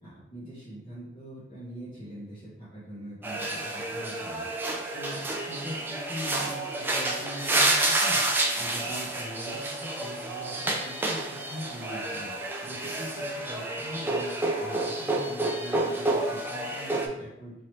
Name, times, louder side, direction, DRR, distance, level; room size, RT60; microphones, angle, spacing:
voice 1, 0.0-4.5 4.9-8.2 8.6-12.3 12.6-14.3 14.6-17.5, equal, 30° left, -9 dB, 1.1 m, -42 dB
sound 1, 3.2-17.1, right 2 dB, 10° right, 0.4 m, -29 dB
3.7 x 3.0 x 3.2 m, 0.88 s
head